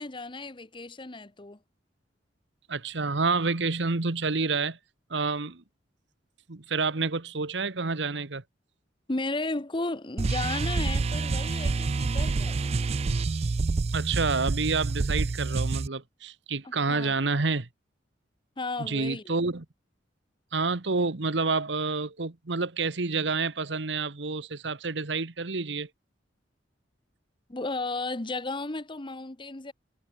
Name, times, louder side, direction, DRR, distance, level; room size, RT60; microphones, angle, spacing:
voice 1, 0.0-1.6 9.1-12.7 16.9-17.1 18.6-19.3 27.5-29.7, left 2 dB, 25° left, 1.0 m, -34 dB
voice 2, 2.7-4.8 5.1-5.6 6.5-8.4 13.9-17.7 18.8-19.6 20.5-25.9, right 4 dB, 70° right, 1.3 m, -28 dB
sound 1, 10.2-15.9, right 3 dB, 35° right, 0.4 m, -27 dB
head